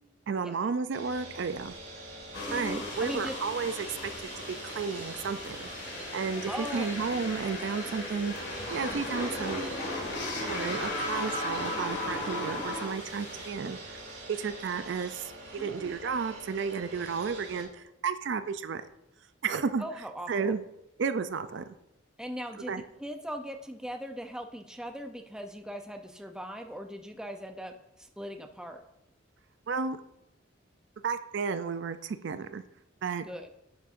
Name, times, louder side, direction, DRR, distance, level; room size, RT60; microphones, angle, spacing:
voice 1, 0.3-1.8 2.5-4.3 4.6-8.3 8.7-9.7 10.4-14.0 14.3-18.8 19.4-19.8 20.3-20.6 21.0-21.6 22.7-22.8 29.7-30.0 31.0-32.6 33.0-33.3, right 5 dB, 60° right, 11 dB, 0.4 m, -32 dB
sound 1, 0.9-17.6, right 2 dB, 85° right, 3.2 m, -44 dB
sound 2, 2.3-13.5, left 2 dB, 60° left, 1.9 m, -36 dB
voice 2, 2.4-3.4 6.5-6.9 15.5-16.0 19.8-20.5 22.2-28.8 33.2-33.5, equal, 5° right, 5 dB, 0.5 m, -40 dB
10.5 x 6.4 x 2.5 m, 0.83 s
head